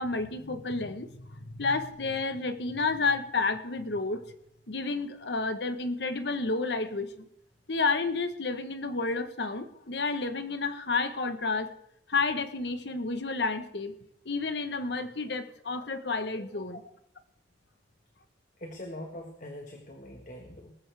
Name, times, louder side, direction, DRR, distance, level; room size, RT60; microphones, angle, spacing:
voice 1, 0.0-4.2 4.7-7.1 7.7-11.7 12.1-13.9 14.2-16.8, left 3 dB, 65° left, 9 dB, 1.1 m, -30 dB
voice 2, 16.4-16.8 18.6-20.7, left 1 dB, 45° left, 3 dB, 1.5 m, -43 dB
19.5 x 14.0 x 3.4 m, 0.71 s
head